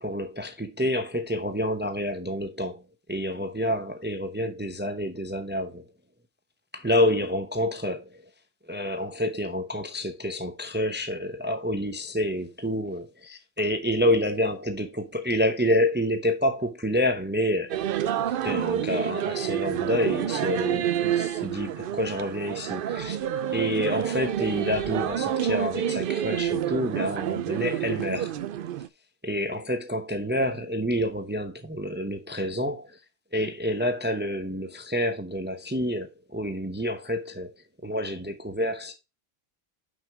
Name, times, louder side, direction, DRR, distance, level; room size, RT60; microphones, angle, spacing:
voice 1, 0.0-2.8 3.1-5.8 6.7-8.2 8.7-17.7 18.3-23.2 23.5-28.3 29.2-33.0 33.3-37.5 37.8-38.9, equal, 10° right, 0.6 m, -28 dB
sound 1, 17.7-28.9, right 10 dB, 65° right, 0.7 m, -28 dB
6.1 x 5.6 x 4.6 m
omnidirectional pair, 1.1 m